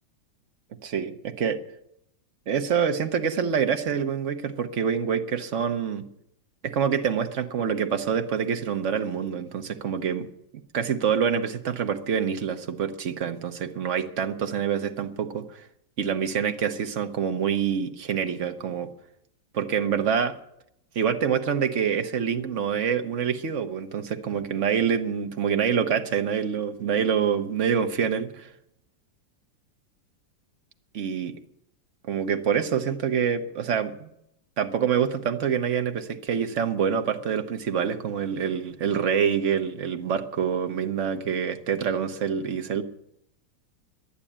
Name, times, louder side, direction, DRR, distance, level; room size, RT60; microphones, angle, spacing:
voice 1, 0.8-1.6 2.5-6.0 6.6-10.3 10.7-15.6 16.0-18.9 19.5-20.4 20.9-28.5 30.9-31.4 32.0-34.1 34.6-42.8, right 7 dB, 50° right, 7 dB, 1.0 m, -26 dB
11.0 x 10.0 x 8.6 m, 0.77 s
omnidirectional pair, 2.1 m